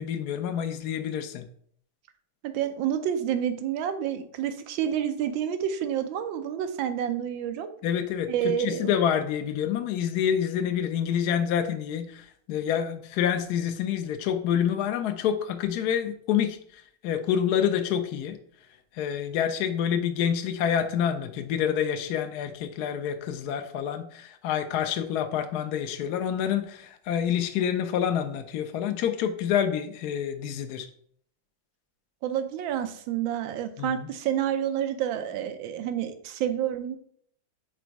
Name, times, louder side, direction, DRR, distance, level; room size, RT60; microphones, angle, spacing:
voice 1, 0.0-1.5 7.8-16.6 17.0-18.4 18.9-30.9 33.8-34.1, left 9 dB, 70° left, 7 dB, 1.0 m, -27 dB
voice 2, 2.4-7.7 8.3-8.9 32.2-37.0, right 9 dB, 85° right, 9 dB, 1.4 m, -29 dB
5.0 x 4.2 x 4.6 m, 0.62 s
omnidirectional pair, 2.1 m